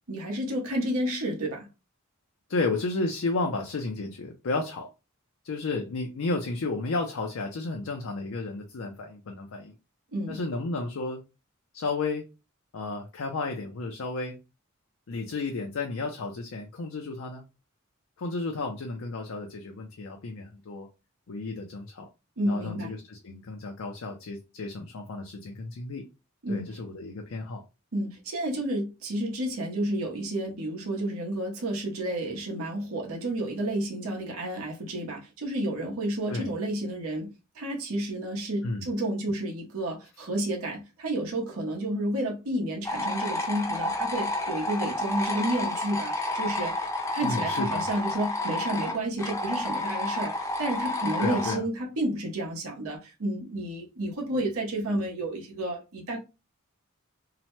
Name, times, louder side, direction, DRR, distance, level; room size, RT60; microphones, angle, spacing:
voice 1, 0.1-1.7 10.1-10.4 22.4-22.9 26.4-26.8 27.9-56.2, right 1 dB, 75° right, 0.8 m, -31 dB
voice 2, 2.5-4.9 5.4-9.7 10.3-11.2 11.7-12.3 12.7-14.4 15.1-17.4 18.2-20.9 21.3-22.1 22.4-26.0 26.5-27.6 36.3-36.5 38.6-38.8 47.2-47.9 51.2-51.6, left 3 dB, 65° left, 0.5 m, -32 dB
sound 1, 42.8-51.5, left 2 dB, 15° left, 0.6 m, -30 dB
2.8 x 2.1 x 3.0 m
head